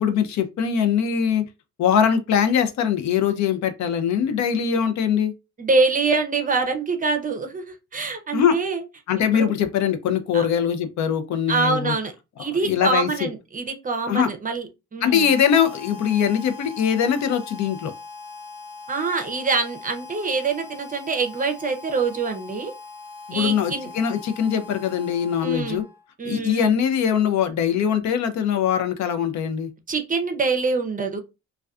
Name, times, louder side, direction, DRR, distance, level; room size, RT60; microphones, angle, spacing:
voice 1, 0.0-1.4 1.8-5.3 8.3-8.6 9.1-11.9 12.5-13.3 14.1-14.3 15.0-17.9 23.3-25.8 26.2-29.7, left 8 dB, 65° left, 0.5 m, -22 dB
voice 2, 5.6-8.8 9.3-9.5 10.3-10.5 11.5-12.1 12.4-15.3 18.9-22.7 23.3-23.9 25.4-25.8 26.2-26.8 29.9-31.2, right 4 dB, 25° right, 0.5 m, -25 dB
Harmonica, 15.1-26.1, left 3 dB, 10° right, 1.0 m, -41 dB
2.3 x 2.2 x 2.3 m
cardioid pair, 90°, 30 cm